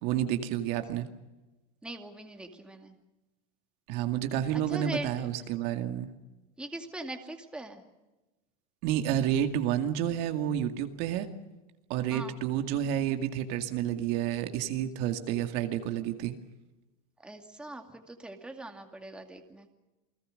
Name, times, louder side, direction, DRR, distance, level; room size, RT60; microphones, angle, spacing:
voice 1, 0.0-1.1 3.9-6.1 8.8-11.3 11.9-16.3, right 10 dB, 55° right, 6 dB, 2.1 m, -30 dB
voice 2, 1.8-2.9 4.5-5.3 6.6-7.8 12.1-12.4 17.2-19.7, right 2 dB, 5° right, 4 dB, 2.3 m, -41 dB
29.0 x 19.0 x 6.5 m, 1.1 s
supercardioid pair, 140°, 19 cm